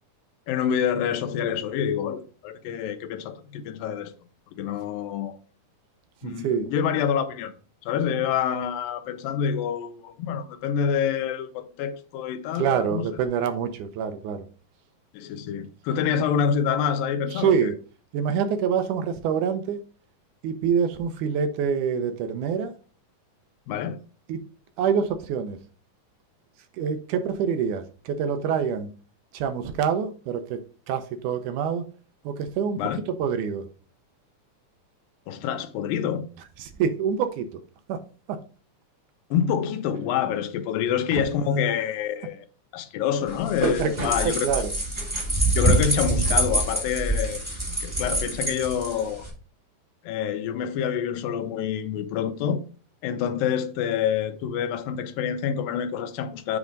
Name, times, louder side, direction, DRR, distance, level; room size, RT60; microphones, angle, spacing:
voice 1, 0.5-4.1 4.5-5.4 6.2-7.5 7.8-13.0 15.1-17.7 23.7-24.0 32.7-33.0 35.3-36.3 39.3-42.5 42.7-44.5 45.6-49.3 50.1-52.6 53.0-56.6, left 8 dB, 85° left, 2.4 m, -27 dB
voice 2, 6.2-6.7 12.6-14.5 17.3-17.8 18.1-19.8 20.4-22.7 24.3-24.4 24.8-25.6 26.8-28.9 29.3-31.9 32.3-32.8 33.2-33.6 36.6-37.5 37.9-38.0 38.3-38.4 41.1-41.2 43.8-44.7, right 7 dB, 75° right, 2.0 m, -26 dB
sound 1, 43.3-49.3, right 1 dB, 10° right, 1.4 m, -25 dB
7.3 x 3.5 x 5.2 m
omnidirectional pair, 3.9 m